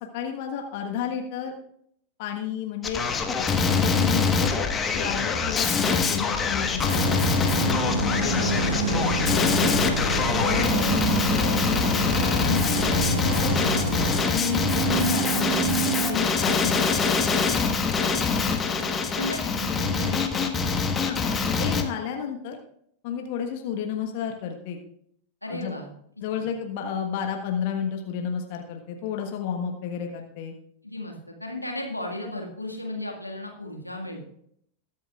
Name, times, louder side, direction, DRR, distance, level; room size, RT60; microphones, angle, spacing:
voice 1, 0.0-1.5 2.2-3.0 3.7-4.5 4.9-7.1 7.6-9.9 10.4-11.0 11.3-11.7 12.4-13.5 14.3-17.2 21.0-21.2 21.6-22.6 23.0-24.8 25.5-25.7 26.2-30.5, left 7 dB, 50° left, 3 dB, 1.4 m, -31 dB
Male speech man speaking, 2.8-21.8, left 5 dB, 20° left, 1.4 m, -24 dB
sound 1, 6.8-14.2, equal, 65° right, 4.6 m, -29 dB
sound 2, 7.0-16.2, right 13 dB, 45° right, 0.5 m, -31 dB
voice 2, 19.2-20.6 25.4-25.9 26.4-26.5 30.8-34.2, left 1 dB, 85° left, 1 dB, 1.9 m, -35 dB
21.0 x 9.1 x 2.5 m, 0.70 s
figure-of-eight pair, 90°, 0 cm